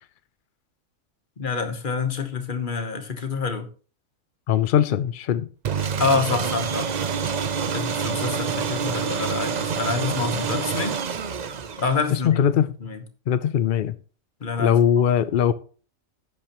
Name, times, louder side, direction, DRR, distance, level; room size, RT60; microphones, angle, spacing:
voice 1, 1.4-3.7 6.0-6.9 7.7-11.0 11.8-12.4 12.8-13.0 14.4-15.0, left 4 dB, 40° left, 1.3 m, -27 dB
voice 2, 4.5-5.5 12.1-12.7 13.3-13.9 14.6-15.5, left 9 dB, 65° left, 0.5 m, -20 dB
sound 1, 5.7-12.2, right 6 dB, 50° right, 0.5 m, -27 dB
10.5 x 8.7 x 3.0 m
omnidirectional pair, 1.4 m